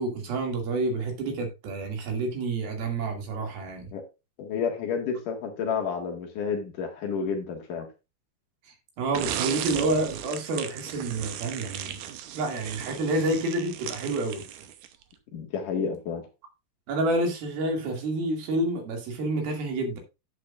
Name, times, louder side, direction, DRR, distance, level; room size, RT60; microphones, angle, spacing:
voice 1, 0.0-3.9 9.0-12.0 12.3-14.4 16.9-20.0, right 2 dB, 85° right, 4.3 m, -28 dB
voice 2, 4.4-7.9 15.3-16.3, left 6 dB, 65° left, 3.2 m, -30 dB
sound 1, 9.1-15.0, right 10 dB, 70° right, 2.2 m, -36 dB
11.5 x 8.1 x 2.5 m
omnidirectional pair, 4.2 m